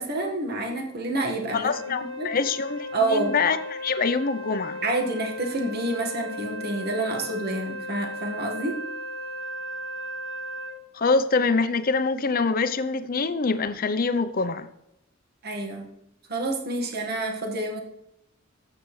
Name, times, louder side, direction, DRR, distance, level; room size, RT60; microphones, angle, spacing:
voice 1, 0.0-2.3 2.9-3.4 4.8-8.8 15.4-15.9 16.3-17.8, right 2 dB, 50° right, 2 dB, 1.6 m, -28 dB
voice 2, 1.5-4.8 10.9-14.7, left 4 dB, 45° left, 12 dB, 0.6 m, -25 dB
Wind instrument woodwind instrument, 1.6-10.8, equal, 75° right, 1.2 m, -36 dB
13.0 x 7.9 x 3.2 m, 0.83 s
head